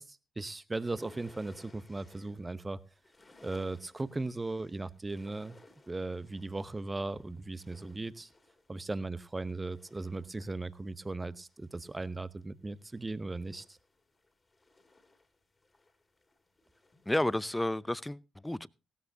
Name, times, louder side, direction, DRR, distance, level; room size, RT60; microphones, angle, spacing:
voice 1, 0.0-2.8 3.4-5.6 5.9-8.3 8.7-13.8, right 2 dB, 25° right, 0.9 m, -37 dB
sound 1, 0.7-17.5, left 2 dB, 30° left, 2.5 m, -60 dB
voice 2, 17.1-18.7, left 1 dB, 10° left, 0.6 m, -31 dB
17.5 x 13.0 x 2.7 m
hypercardioid pair, 40°, 0 cm